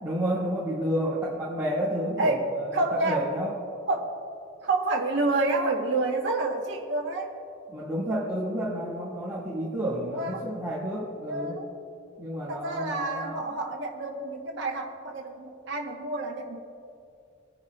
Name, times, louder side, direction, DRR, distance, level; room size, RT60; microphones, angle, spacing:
voice 1, 0.0-3.6 7.7-11.6 12.2-13.4, right 1 dB, 10° right, -10 dB, 2.0 m, -30 dB
voice 2, 2.2-3.3 3.9-4.1 4.6-7.3 10.1-10.4 11.3-11.7 12.5-16.6, right 2 dB, 60° right, -2 dB, 1.2 m, -28 dB
25.0 x 10.5 x 2.4 m, 2.6 s
head